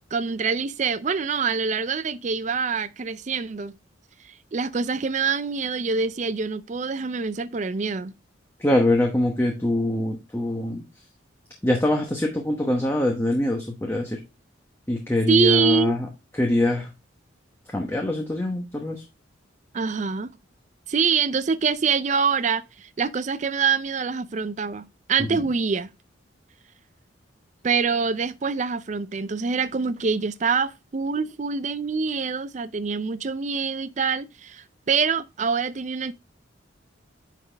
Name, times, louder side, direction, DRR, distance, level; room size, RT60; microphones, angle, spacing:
voice 1, 0.1-3.7 4.2-8.1 15.3-15.9 19.7-20.3 20.9-25.9 27.6-36.1, right 5 dB, 35° right, 0.4 m, -25 dB
voice 2, 8.6-10.8 11.6-14.2 14.9-16.1 16.3-16.9 17.7-19.0, left 1 dB, 10° left, 0.9 m, -23 dB
9.3 x 4.2 x 3.3 m
head